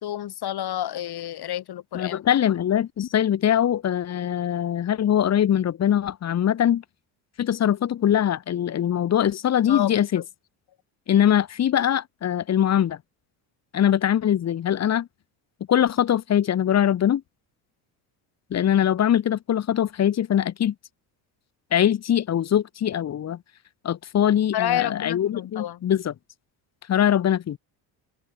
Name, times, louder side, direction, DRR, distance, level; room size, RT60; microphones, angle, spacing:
voice 1, 0.0-2.2 9.7-10.0 24.5-25.9, left 12 dB, 50° left, 2.1 m, -29 dB
voice 2, 1.9-6.8 7.4-10.2 11.1-13.0 13.7-15.1 15.7-17.2 18.5-20.7 21.7-23.4 23.8-26.1 26.9-27.6, left 10 dB, 35° left, 0.8 m, -22 dB
open air
supercardioid pair, 85°, 48 cm